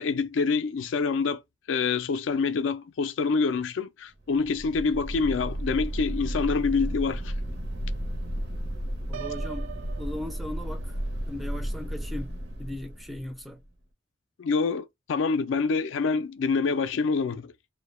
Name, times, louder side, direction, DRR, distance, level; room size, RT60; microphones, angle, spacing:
voice 1, 0.0-1.4 1.7-7.3 14.4-17.5, left 4 dB, 80° left, 0.4 m, -26 dB
sound 1, 4.3-13.6, right 1 dB, 60° right, 0.7 m, -33 dB
voice 2, 9.1-9.7 10.0-11.0 11.3-12.3 12.6-13.6, left 1 dB, ahead, 0.4 m, -37 dB
Piano, 9.1-11.0, right 10 dB, 80° right, 0.3 m, -41 dB
2.2 x 2.1 x 3.0 m
head